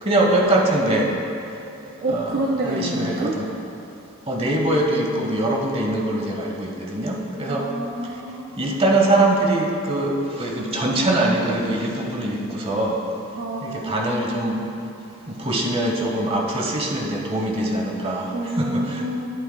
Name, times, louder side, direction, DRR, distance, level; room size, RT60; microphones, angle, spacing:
voice 1, 0.0-1.1 1.8-3.5 4.3-7.6 8.6-13.0 13.6-14.6 15.3-19.1, right 1 dB, 25° right, 0 dB, 0.9 m, -23 dB
voice 2, 2.0-3.4 7.5-8.6 13.4-14.1 18.3-19.3, right 1 dB, 45° right, -2 dB, 0.6 m, -28 dB
11.0 x 9.1 x 2.2 m, 2.7 s
head